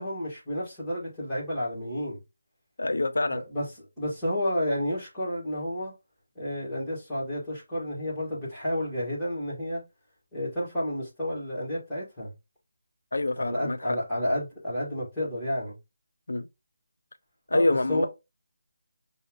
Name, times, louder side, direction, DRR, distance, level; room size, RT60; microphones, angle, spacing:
voice 1, 0.0-2.2 3.3-3.6 4.0-5.9 6.4-9.8 10.3-12.3 13.4-15.8 17.5-18.1, equal, 5° left, 1.9 m, -31 dB
voice 2, 2.8-3.4 13.1-14.0 16.3-16.5 17.5-18.1, left 2 dB, 85° left, 0.5 m, -26 dB
5.5 x 2.8 x 2.4 m
figure-of-eight pair, 175°, 0 cm